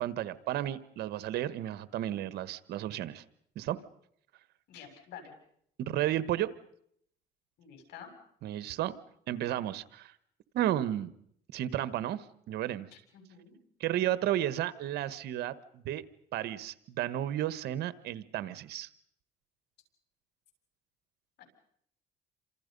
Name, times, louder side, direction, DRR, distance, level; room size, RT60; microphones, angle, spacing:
voice 1, 0.0-3.2 3.5-3.8 5.8-6.5 8.4-8.9 9.3-10.1 10.5-11.1 11.5-12.9 13.8-16.0 16.3-18.9, right 12 dB, 75° right, 15 dB, 1.4 m, -33 dB
voice 2, 4.7-5.3 7.6-8.1 8.6-8.7 12.9-13.6 21.4-21.5, left 8 dB, 75° left, 4 dB, 7.6 m, -49 dB
29.5 x 27.0 x 5.4 m, 0.69 s
cardioid pair, 110°, 17 cm